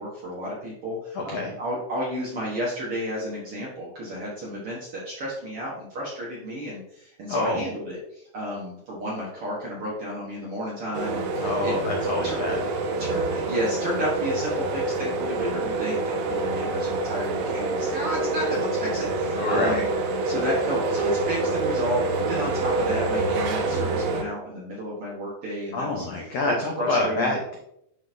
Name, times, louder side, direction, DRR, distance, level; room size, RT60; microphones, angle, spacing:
voice 1, 0.0-11.7 12.2-12.3 13.0-19.9 20.2-26.0 26.4-27.3, equal, 60° right, -6 dB, 1.5 m, -32 dB
voice 2, 1.1-1.5 7.3-7.6 11.4-12.6 19.4-19.8 25.7-27.6, left 2 dB, 80° left, 0 dB, 1.4 m, -27 dB
sound 1, 10.9-24.2, right 2 dB, 80° right, 2.4 m, -26 dB
10.5 x 3.9 x 2.6 m, 0.78 s
omnidirectional pair, 4.1 m